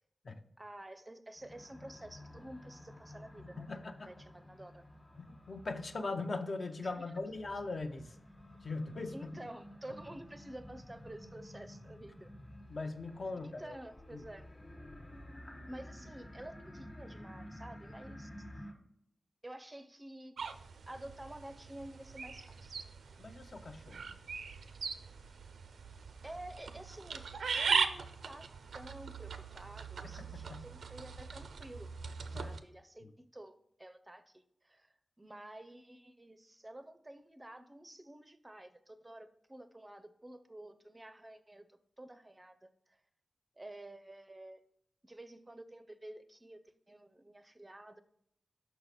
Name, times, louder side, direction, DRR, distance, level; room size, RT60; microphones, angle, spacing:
voice 1, 0.6-3.7 4.0-4.8 6.8-7.1 9.1-12.3 13.6-14.5 15.7-18.5 19.4-20.4 20.9-22.8 26.2-27.3 27.5-28.5 28.7-31.9 32.3-33.5 33.8-34.9 35.2-43.0 43.6-44.6 45.0-46.6 46.9-48.0, right 1 dB, 20° right, 10 dB, 0.4 m, -50 dB
sound 1, 1.4-18.7, left 1 dB, 25° left, 1.2 m, -52 dB
voice 2, 3.6-4.1 5.2-8.2 8.6-9.5 9.9-10.0 12.7-13.8 14.1-14.2 23.2-24.2 30.0-30.7 32.3-32.5 33.0-33.1, left 3 dB, 55° left, 7 dB, 0.6 m, -41 dB
sound 2, 20.4-32.6, right 5 dB, 90° right, 0.4 m, -39 dB
5.8 x 4.6 x 4.1 m, 0.73 s
wide cardioid pair, 80°, 0 cm